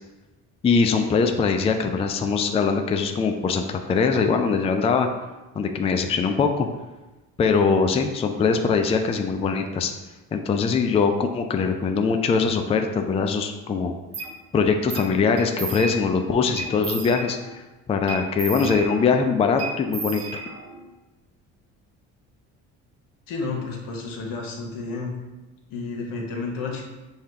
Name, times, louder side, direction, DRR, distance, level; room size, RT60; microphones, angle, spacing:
voice 1, 0.6-5.1 5.6-6.7 7.4-9.9 10.3-13.9 14.5-17.6 17.9-20.4, left 5 dB, 20° left, 5 dB, 0.3 m, -22 dB
sound 1, 14.1-14.3 14.9-15.1 15.4-16.2 16.6-17.6 18.1-19.2 19.6-20.8, right 4 dB, 45° right, 0.9 m, -33 dB
voice 2, 23.3-25.1 25.7-26.8, left 3 dB, 80° left, 0 dB, 1.0 m, -31 dB
5.6 x 2.3 x 3.3 m, 1.1 s
cardioid pair, 90°, 33 cm